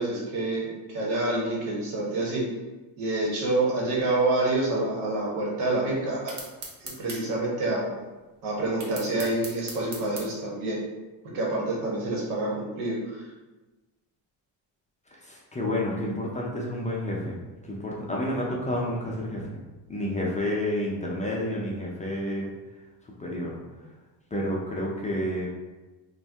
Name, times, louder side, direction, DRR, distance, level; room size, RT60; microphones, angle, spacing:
voice 1, 0.0-2.4 3.0-6.3 6.8-7.9 8.4-10.8 11.3-13.0, right 2 dB, 90° right, -4 dB, 1.1 m, -27 dB
sound 1, 6.3-7.2 8.8-10.3, right 3 dB, 35° right, 0.7 m, -38 dB
voice 2, 15.3-17.4 17.7-19.6 19.9-22.5 23.2-23.5 24.3-25.5, left 1 dB, 15° left, -4 dB, 0.4 m, -29 dB
2.6 x 2.2 x 3.3 m, 1.2 s
cardioid pair, 105°, 47 cm